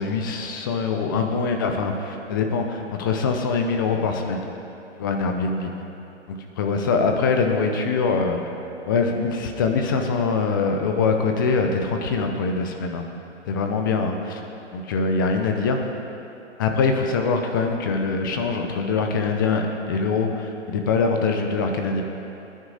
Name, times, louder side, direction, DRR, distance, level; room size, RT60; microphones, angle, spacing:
voice 1, 0.0-4.4 5.0-5.7 6.3-8.4 8.9-13.0 13.5-14.4 14.7-15.8 16.6-22.0, left 4 dB, 20° left, 4 dB, 0.5 m, -23 dB
19.0 x 10.0 x 3.9 m, 2.8 s
hypercardioid pair, 150°, 37 cm